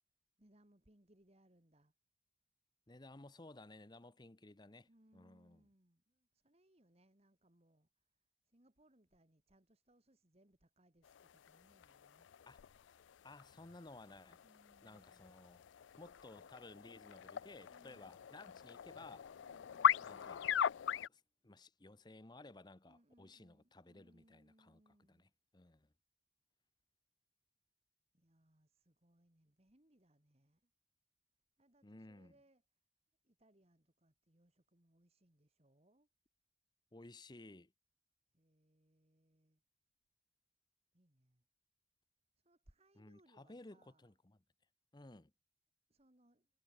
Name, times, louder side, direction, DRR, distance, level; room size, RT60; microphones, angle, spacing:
voice 1, 0.4-1.9 4.8-8.1 8.4-12.3 14.4-15.6 17.6-18.2 19.4-20.5 22.8-25.3 28.1-30.7 31.6-32.6 33.2-36.1 38.3-39.6 40.9-41.4 42.4-44.1 45.9-46.5, right 1 dB, 35° right, 2.4 m, -71 dB
voice 2, 2.9-5.6 12.5-12.6 13.2-14.4 14.8-15.6 16.0-19.3 20.0-20.5 21.1-24.8 25.1-25.9 31.8-32.3 36.9-37.7 43.0-44.4 44.9-45.3, left 2 dB, 20° left, 0.8 m, -57 dB
sound 1, 11.0-21.1, left 8 dB, 80° left, 0.4 m, -40 dB
head